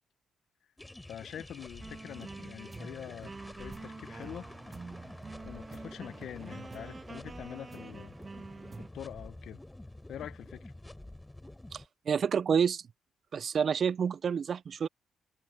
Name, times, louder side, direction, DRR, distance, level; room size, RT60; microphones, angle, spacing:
sound 1, 0.8-11.8, left 1 dB, 15° left, 4.3 m, -49 dB
voice 1, 1.1-3.3 3.6-4.5 5.4-8.1 8.8-9.6 10.1-10.7, left 10 dB, 70° left, 1.0 m, -44 dB
sound 2, 1.8-8.9, right 4 dB, 35° right, 1.5 m, -46 dB
voice 2, 11.7-12.8 13.3-14.9, right 7 dB, 55° right, 0.6 m, -29 dB
supercardioid pair, 50°, 0 cm